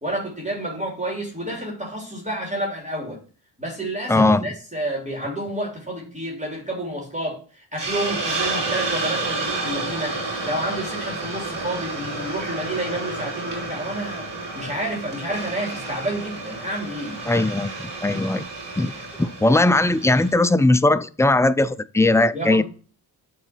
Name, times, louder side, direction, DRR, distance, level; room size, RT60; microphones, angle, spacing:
voice 1, 0.0-3.2 3.6-10.2 10.4-14.3 14.5-17.2 22.3-22.6, right 1 dB, 15° right, 3.1 m, -29 dB
voice 2, 4.1-4.5 17.3-17.7 18.0-18.4 18.8-18.9 19.2-22.6, left 2 dB, 5° left, 0.3 m, -18 dB
Hiss, 7.8-20.3, right 3 dB, 75° right, 3.1 m, -30 dB
8.6 x 4.0 x 4.4 m
wide cardioid pair, 70°, 43 cm